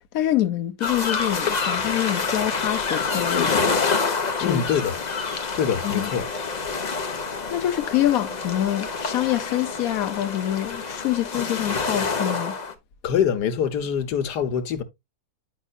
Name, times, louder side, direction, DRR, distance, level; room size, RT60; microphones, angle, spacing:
voice 1, 0.1-3.7 4.4-4.6 5.8-6.1 7.5-12.5, left 13 dB, 65° left, 1.1 m, -25 dB
sound 1, 0.8-12.7, left 4 dB, 35° left, 0.8 m, -27 dB
voice 2, 4.4-4.9 5.5-6.3 13.0-14.8, left 8 dB, 80° left, 1.5 m, -24 dB
10.0 x 5.4 x 2.4 m
omnidirectional pair, 1.8 m